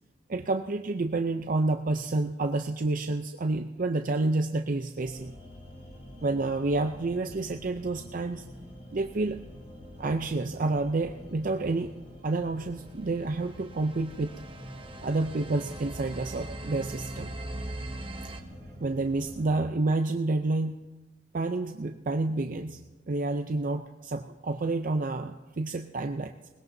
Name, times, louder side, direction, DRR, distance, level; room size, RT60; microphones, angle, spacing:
voice 1, 0.3-5.3 6.2-8.4 8.9-9.4 10.0-11.9 12.2-14.3 15.0-17.3 18.8-20.8 21.3-22.8 23.1-26.3, right 2 dB, 50° right, 6 dB, 0.5 m, -29 dB
sound 1, 5.0-19.6, equal, 35° left, 4.0 m, -46 dB
sound 2, 13.0-18.4, right 1 dB, 30° right, 1.0 m, -41 dB
21.5 x 19.5 x 2.7 m, 1.2 s
head